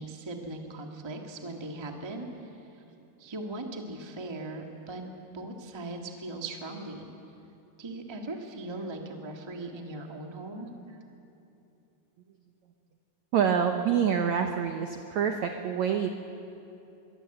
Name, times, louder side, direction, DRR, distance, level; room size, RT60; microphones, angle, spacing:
voice 1, 0.0-2.8 3.2-5.0 5.3-7.1 7.8-11.0, right 2 dB, 30° right, 2 dB, 0.5 m, -39 dB
voice 2, 13.3-16.1, right 7 dB, 80° right, 5 dB, 1.6 m, -26 dB
24.0 x 22.5 x 8.0 m, 2.8 s
omnidirectional pair, 4.6 m